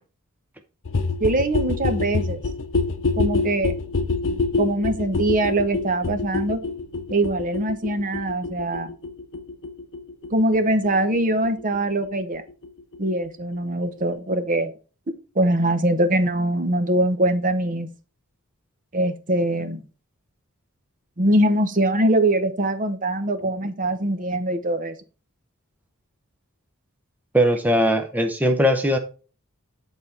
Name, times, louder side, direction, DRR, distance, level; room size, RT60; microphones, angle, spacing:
sound 1, 0.8-12.4 12.6-12.7 12.9-13.0 13.2-13.3 13.5-13.6 13.8-13.9 14.1-14.2, left 3 dB, 65° left, 0.7 m, -27 dB
voice 1, 1.2-2.4 3.2-3.7 4.6-6.6 7.1-8.9 10.3-12.4 13.0-14.7 15.3-17.9 18.9-19.8 21.2-25.0, right 1 dB, 40° right, 0.9 m, -22 dB
voice 2, 27.3-29.0, equal, 10° right, 0.7 m, -19 dB
9.1 x 4.1 x 4.5 m
head